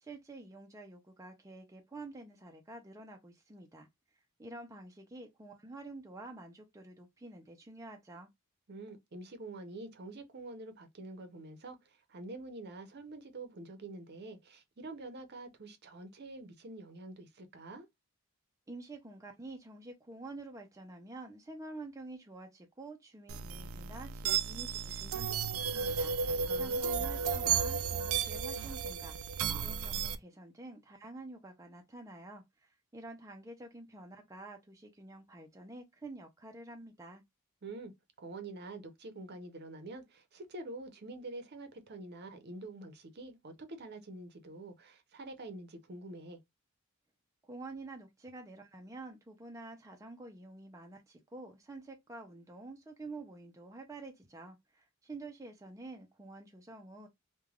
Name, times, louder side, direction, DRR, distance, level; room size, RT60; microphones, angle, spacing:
voice 1, 0.0-3.9 4.4-8.3 18.7-26.2 26.5-29.2 29.5-37.2 47.4-57.1, right 2 dB, 15° right, 0.4 m, -48 dB
voice 2, 8.7-17.9 26.4-27.2 37.6-37.9 38.2-46.4, right 2 dB, 55° right, 0.7 m, -46 dB
sound 1, 23.3-30.1, right 6 dB, 90° right, 0.4 m, -33 dB
3.2 x 2.2 x 2.3 m
head